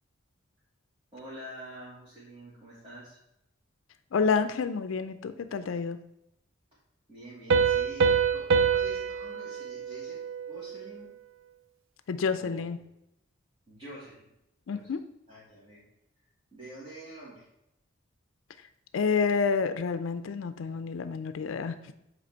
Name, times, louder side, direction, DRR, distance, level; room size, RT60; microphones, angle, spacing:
voice 1, 1.1-3.2 7.1-11.1 12.3-12.7 13.7-14.3 14.7-14.9 15.3-15.8 16.5-17.5, right 1 dB, 25° right, -9 dB, 1.7 m, -47 dB
voice 2, 4.1-6.0 12.1-12.8 14.7-15.0 18.9-21.9, left 5 dB, 75° left, 11 dB, 0.4 m, -29 dB
Piano, 7.5-10.9, right 6 dB, 75° right, 0.4 m, -26 dB
7.7 x 3.0 x 4.5 m, 0.83 s
head